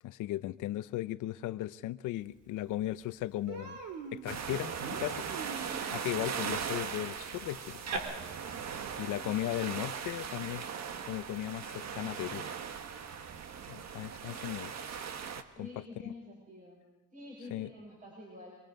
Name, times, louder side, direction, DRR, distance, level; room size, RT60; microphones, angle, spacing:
voice 1, 0.0-3.8 4.1-7.8 9.0-10.6 11.0-12.4 13.7-14.7 15.6-15.7 16.0-16.1 17.5-17.7, left 14 dB, 90° left, 14 dB, 0.7 m, -37 dB
Human voice, 2.5-2.6 2.9-3.1 3.5-8.0, right 5 dB, 90° right, 3.4 m, -43 dB
sound 1, 4.3-15.4, right 7 dB, 60° right, 1.5 m, -39 dB
voice 2, 15.5-16.8 17.1-18.6, left 2 dB, 25° right, -3 dB, 6.6 m, -48 dB
26.5 x 23.0 x 5.2 m, 1.1 s
cardioid pair, 90°, 30 cm